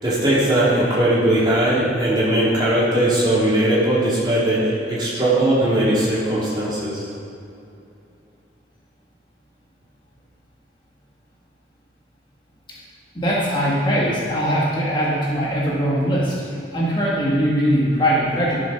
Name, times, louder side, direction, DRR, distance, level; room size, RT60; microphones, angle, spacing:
voice 1, 0.0-7.0, right 1 dB, 25° right, -8 dB, 3.1 m, -19 dB
voice 2, 13.1-16.3 16.7-18.6, equal, 25° left, -6 dB, 1.6 m, -20 dB
12.0 x 7.2 x 5.8 m, 2.7 s
head